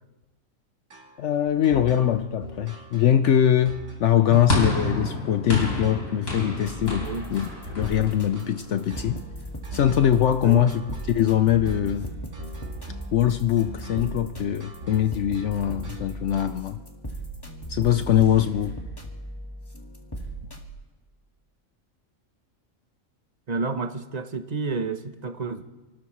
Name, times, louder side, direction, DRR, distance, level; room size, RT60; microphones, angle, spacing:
sound 1, 0.9-16.8, right 2 dB, 60° right, 2.6 m, -41 dB
voice 1, 1.2-7.5 7.7-9.2 9.7-10.8 11.1-12.1 13.1-16.8 17.7-18.8, left 10 dB, 65° left, 10 dB, 0.9 m, -22 dB
sound 2, 4.5-8.9, left 3 dB, 85° left, 4.5 m, -29 dB
sound 3, 6.6-20.7, right 1 dB, 15° left, 1.7 m, -38 dB
voice 2, 7.0-7.3 10.4-10.7 23.5-25.6, right 4 dB, 35° right, 9 dB, 0.8 m, -30 dB
29.5 x 13.0 x 3.1 m, 1.2 s
omnidirectional pair, 1.4 m